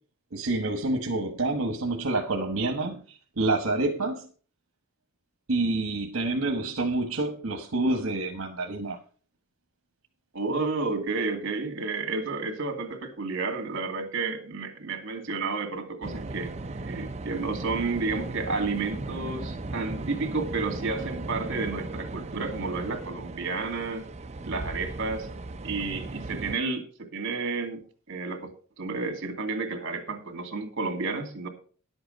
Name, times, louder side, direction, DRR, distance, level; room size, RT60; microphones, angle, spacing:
voice 1, 0.3-4.3 5.5-9.0, right 2 dB, 75° right, 1.2 m, -28 dB
voice 2, 10.3-16.5 16.9-24.1 24.4-25.3 25.6-28.5 28.8-31.5, right 3 dB, 60° right, 2.4 m, -31 dB
sound 1, 16.0-26.6, right 2 dB, 30° right, 0.6 m, -36 dB
11.0 x 7.8 x 5.2 m
head